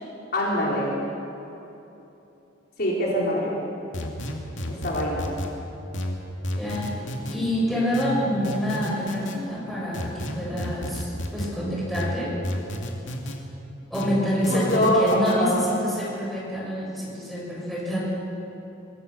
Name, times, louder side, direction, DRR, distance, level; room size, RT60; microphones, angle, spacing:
voice 1, 0.3-0.9 2.8-3.5 4.7-5.3 14.5-15.6, left 1 dB, 55° left, -4 dB, 4.2 m, -23 dB
sound 1, 3.9-5.5 5.9-7.4 7.9-9.4 9.9-11.5 11.9-13.4 13.9-15.4, equal, 70° left, 2.5 m, -31 dB
voice 2, 6.6-6.9 7.3-12.4 13.9-18.1, equal, ahead, -6 dB, 6.9 m, -27 dB
25.0 x 17.0 x 6.8 m, 3.0 s
head